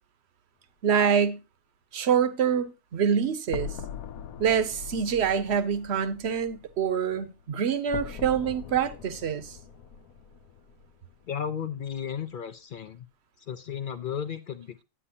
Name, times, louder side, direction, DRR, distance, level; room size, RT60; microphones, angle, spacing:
voice 1, 0.8-1.4 1.9-3.7 4.4-9.6, right 7 dB, 55° right, 0.9 m, -26 dB
sound 1, 3.5-11.5, left 8 dB, 90° left, 1.1 m, -42 dB
voice 2, 11.2-13.1 13.4-14.8, left 8 dB, 70° left, 0.4 m, -34 dB
9.9 x 8.6 x 2.7 m
omnidirectional pair, 1.5 m